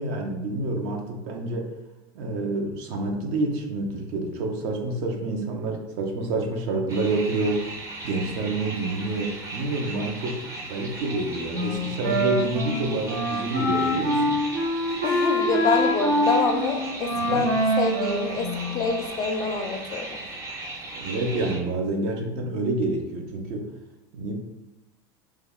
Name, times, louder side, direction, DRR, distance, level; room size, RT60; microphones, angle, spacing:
voice 1, 0.0-1.7 2.1-7.7 8.0-14.4 17.1-17.5 21.0-23.7 24.1-24.4, right 2 dB, 60° right, 2 dB, 0.7 m, -28 dB
sound 1, 6.9-21.6, right 2 dB, 25° right, 0.6 m, -37 dB
Wind instrument woodwind instrument, 11.5-19.0, equal, 80° right, 1.1 m, -25 dB
voice 2, 15.0-20.1, left 4 dB, 30° left, 5 dB, 0.4 m, -26 dB
3.1 x 2.3 x 3.6 m, 0.97 s
supercardioid pair, 130°, 12 cm